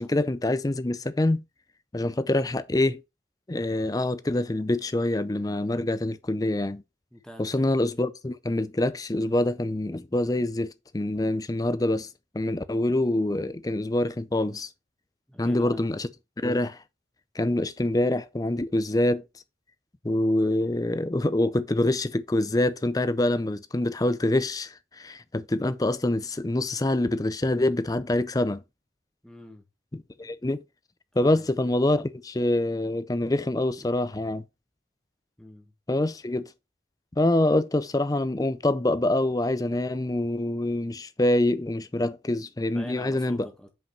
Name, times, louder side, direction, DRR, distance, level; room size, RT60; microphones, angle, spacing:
voice 1, 0.0-1.4 1.9-3.0 3.5-6.8 7.4-12.1 12.3-14.7 15.4-16.1 16.4-16.8 17.4-19.2 20.0-28.6 29.9-30.6 31.2-34.4 35.9-36.5 37.2-43.5, left 1 dB, 20° left, 0.5 m, -25 dB
voice 2, 7.1-7.7 15.3-15.8 29.2-29.6 31.2-31.7 33.8-33.9 35.4-35.7 42.7-43.7, equal, 5° left, 1.5 m, -44 dB
5.6 x 5.2 x 5.6 m
head